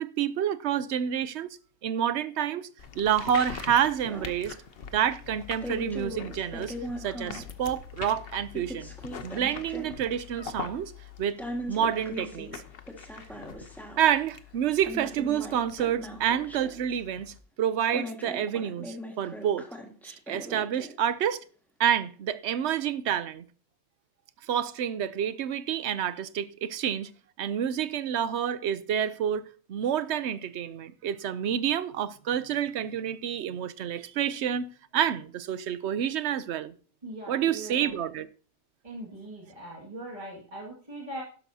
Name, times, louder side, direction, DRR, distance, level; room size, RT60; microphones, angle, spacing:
voice 1, 0.0-1.5 1.8-2.7 3.0-4.5 4.9-6.7 7.0-8.9 9.2-10.9 11.2-11.4 11.7-12.6 14.0-19.7 20.3-21.4 21.8-23.4 24.5-27.1 27.4-36.7 37.3-38.3, right 9 dB, 65° right, 0.9 m, -28 dB
sound 1, 2.8-17.4, left 7 dB, 55° left, 1.0 m, -44 dB
sound 2, 4.1-4.5 5.6-7.5 8.5-10.1 11.4-14.2 14.8-17.0 17.9-21.1, equal, ahead, 1.6 m, -39 dB
voice 2, 37.0-38.0 38.8-41.2, right 1 dB, 25° right, 2.2 m, -40 dB
12.0 x 11.5 x 2.7 m
omnidirectional pair, 1.3 m